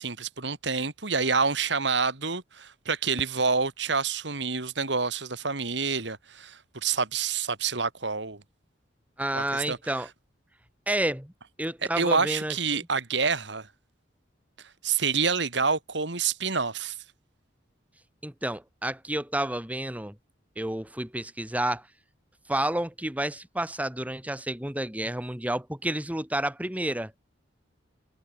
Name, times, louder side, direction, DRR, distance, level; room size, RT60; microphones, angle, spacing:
voice 1, 0.0-8.4 9.3-9.8 12.0-13.7 14.8-16.9, right 5 dB, 65° right, 2.4 m, -27 dB
voice 2, 9.2-10.1 10.9-11.3 11.6-12.9 18.2-20.2 20.6-21.9 22.5-27.1, right 1 dB, 10° right, 1.8 m, -30 dB
head